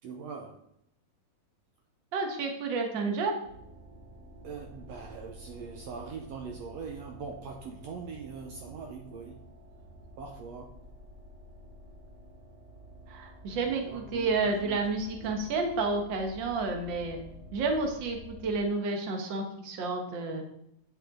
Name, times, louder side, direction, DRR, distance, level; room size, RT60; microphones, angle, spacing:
voice 1, 0.0-0.6 4.4-9.5 10.2-10.8 13.7-14.8 15.2-15.4, right 5 dB, 85° right, 3 dB, 1.4 m, -42 dB
voice 2, 2.1-3.4 13.1-17.2 17.5-20.4, right 3 dB, 55° right, 3 dB, 1.3 m, -30 dB
sound 1, 3.4-18.7, equal, 10° right, 2.5 m, -50 dB
9.1 x 9.0 x 3.8 m, 0.76 s
omnidirectional pair, 4.2 m